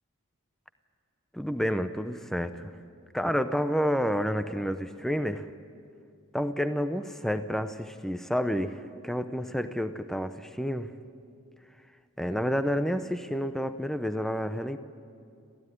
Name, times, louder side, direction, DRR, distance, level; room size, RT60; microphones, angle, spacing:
voice 1, 1.3-2.7 3.1-5.5 6.3-10.9 12.2-14.8, equal, ahead, 10 dB, 0.7 m, -29 dB
26.0 x 15.0 x 9.8 m, 2.3 s
head